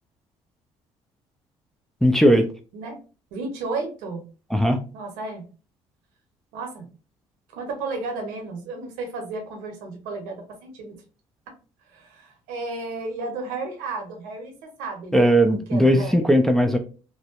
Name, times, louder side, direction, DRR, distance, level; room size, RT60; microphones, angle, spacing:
voice 1, 2.0-2.5 4.5-4.8 15.1-16.8, equal, 5° left, 0.4 m, -18 dB
voice 2, 3.3-4.2 4.9-5.4 6.5-6.9 7.5-11.0 11.9-16.3, right 3 dB, 90° right, 0.8 m, -33 dB
2.7 x 2.1 x 2.4 m
supercardioid pair, 75°, 13 cm